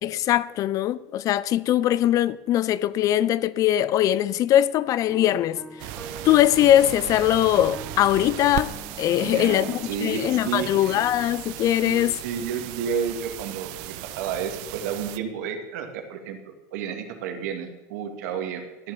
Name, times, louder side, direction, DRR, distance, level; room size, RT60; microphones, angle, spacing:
voice 1, 0.0-5.6 6.2-12.2, left 12 dB, 40° left, 0.6 m, -21 dB
sound 1, 4.9-12.1, right 2 dB, ahead, 1.7 m, -44 dB
sound 2, 5.8-15.2, right 15 dB, 65° right, 0.8 m, -37 dB
voice 2, 9.2-11.0 11.8-16.4 16.7-18.9, right 7 dB, 80° right, 2.5 m, -31 dB
14.0 x 10.0 x 7.2 m
supercardioid pair, 135°, 8 cm